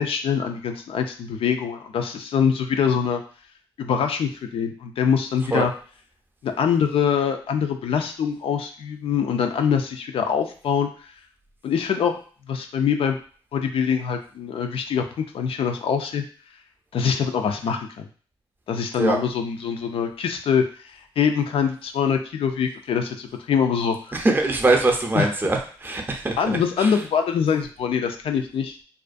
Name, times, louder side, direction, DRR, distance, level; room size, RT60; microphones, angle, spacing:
voice 1, 0.0-3.2 3.8-5.7 6.4-10.9 11.6-12.2 12.5-13.2 13.5-15.0 15.3-16.2 16.9-18.1 18.7-24.0 25.1-25.3 26.4-28.8, left 7 dB, 70° left, 5 dB, 0.3 m, -24 dB
voice 2, 24.1-27.0, right 2 dB, 20° right, 2 dB, 0.5 m, -22 dB
2.4 x 2.1 x 2.5 m, 0.42 s
supercardioid pair, 50°, 10 cm